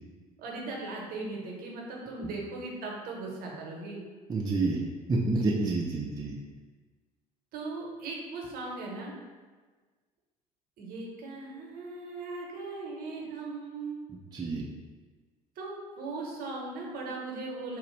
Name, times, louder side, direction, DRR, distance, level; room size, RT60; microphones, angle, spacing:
voice 1, 0.4-4.0 7.5-9.2 10.8-14.0 15.6-17.8, right 3 dB, 50° right, -1 dB, 0.9 m, -38 dB
voice 2, 4.3-4.8 5.1-6.3 14.3-14.6, right 3 dB, 20° right, -2 dB, 0.4 m, -28 dB
3.8 x 2.4 x 3.1 m, 1.4 s
figure-of-eight pair, 60°, 19 cm